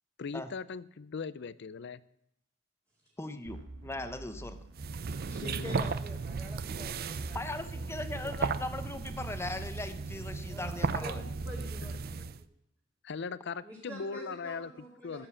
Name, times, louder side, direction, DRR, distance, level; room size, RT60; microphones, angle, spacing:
voice 1, 0.2-2.0 5.4-5.8 11.8-11.9 13.0-14.7 15.0-15.3, left 5 dB, 60° left, 17 dB, 0.5 m, -39 dB
voice 2, 3.2-4.6 7.3-11.2, left 2 dB, 15° left, 9 dB, 0.9 m, -39 dB
sound 1, 3.5-7.6, right 2 dB, 65° right, 1.3 m, -50 dB
sound 2, 4.7-12.4, right 4 dB, 50° right, 0.5 m, -35 dB
voice 3, 5.3-7.9 8.2-8.3 10.5-12.4 13.6-15.3, equal, 15° right, -4 dB, 2.3 m, -47 dB
14.5 x 7.9 x 7.2 m, 0.79 s
head